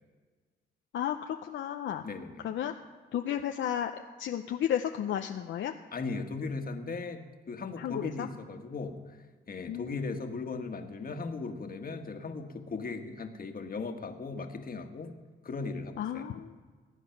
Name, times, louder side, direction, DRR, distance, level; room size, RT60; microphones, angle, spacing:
voice 1, 0.9-2.0 2.4-2.7 3.1-5.7 7.8-8.3 9.7-10.1 16.0-16.5, left 10 dB, 70° left, 5 dB, 0.7 m, -33 dB
voice 2, 2.0-2.4 5.9-9.2 9.5-15.1 15.4-16.2, left 4 dB, 45° left, 5 dB, 1.7 m, -38 dB
19.5 x 8.4 x 6.0 m, 1.4 s
supercardioid pair, 60°, 20 cm